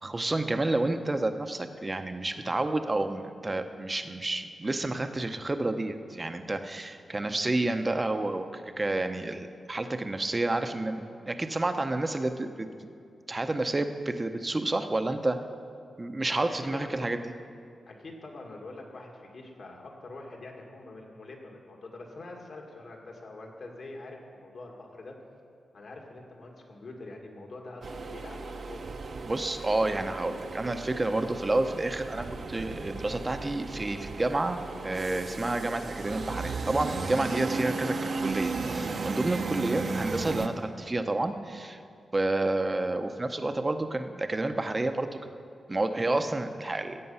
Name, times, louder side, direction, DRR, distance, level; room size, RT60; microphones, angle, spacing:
voice 1, 0.0-12.9 13.3-15.4 16.0-17.2 29.3-41.8 42.1-45.1 45.7-47.0, right 2 dB, 25° right, 8 dB, 0.7 m, -30 dB
voice 2, 16.6-17.0 17.9-25.2 25.7-29.0, left 2 dB, 60° left, 1 dB, 2.0 m, -45 dB
sound 1, 27.8-40.5, right 4 dB, 55° right, 0.8 m, -35 dB
15.5 x 8.5 x 5.6 m, 2.4 s
wide cardioid pair, 115°, 0 cm